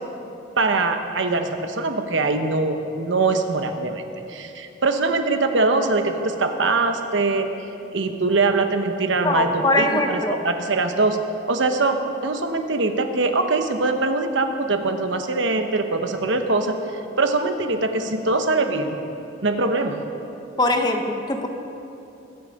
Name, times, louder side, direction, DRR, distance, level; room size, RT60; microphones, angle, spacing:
voice 1, 0.6-4.0 4.3-7.5 7.9-11.2 11.5-16.7 17.2-19.0 19.4-20.0, right 3 dB, 75° right, 6 dB, 1.0 m, -22 dB
voice 2, 9.2-10.4 20.6-21.5, left 2 dB, 20° left, 4 dB, 0.9 m, -21 dB
22.0 x 7.8 x 5.3 m, 3.0 s
head